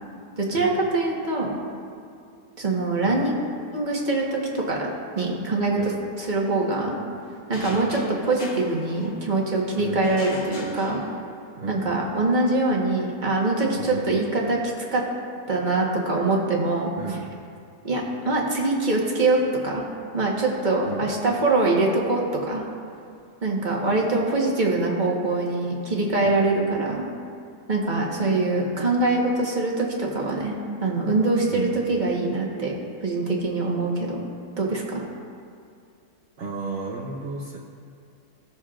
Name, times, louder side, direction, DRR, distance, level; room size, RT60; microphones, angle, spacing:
voice 1, 0.4-1.6 2.6-3.3 3.7-4.8 5.2-7.0 7.5-11.0 11.7-14.6 14.9-15.0 15.5-16.9 17.8-19.8 20.1-22.6 23.4-27.1 27.7-30.5 30.8-32.7 33.0-34.2 34.6-35.0, right 2 dB, 30° right, -2 dB, 1.3 m, -23 dB
sound 1, 7.5-9.5 10.0-11.6, left 3 dB, 60° left, 1.4 m, -41 dB
voice 2, 11.5-12.2 13.8-14.3 17.0-17.3 20.9-21.0 31.5-31.8 36.4-37.6, right 4 dB, 50° right, -3 dB, 0.8 m, -34 dB
17.5 x 6.5 x 2.5 m, 2.4 s
omnidirectional pair, 1.8 m